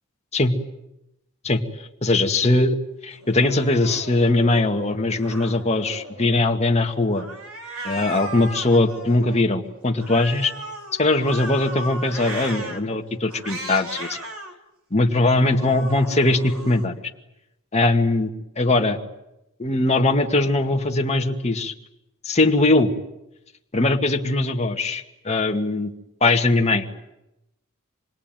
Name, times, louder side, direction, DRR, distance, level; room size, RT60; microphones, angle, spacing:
voice 1, 1.4-2.8 3.0-7.3 7.8-10.5 11.0-14.2 14.9-16.9 17.7-18.3 18.6-19.0 19.6-21.7 22.2-22.9 23.7-25.9 26.2-26.8, left 2 dB, 30° left, 3 dB, 2.0 m, -20 dB
Cat, 3.2-4.7 5.2-6.5 7.1-9.4 10.0-12.8 13.3-14.5 15.1-16.9, right 1 dB, 80° right, 3.6 m, -36 dB
27.0 x 21.5 x 9.1 m, 0.89 s
head